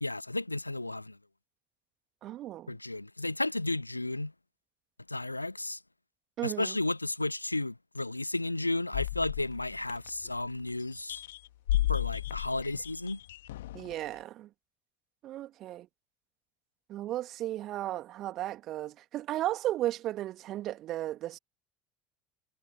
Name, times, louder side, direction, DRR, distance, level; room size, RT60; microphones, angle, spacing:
voice 1, 0.0-1.2 2.7-4.3 5.1-5.8 6.4-11.2 11.9-13.2, left 2 dB, 85° left, 0.5 m, -33 dB
voice 2, 2.2-2.8 6.4-6.8 13.7-14.5 15.2-15.9 16.9-21.4, right 14 dB, 45° right, 2.5 m, -35 dB
sound 1, 8.9-10.5 10.9-13.9, left 15 dB, 65° left, 1.9 m, -33 dB
figure-of-eight pair, 65°, 0 cm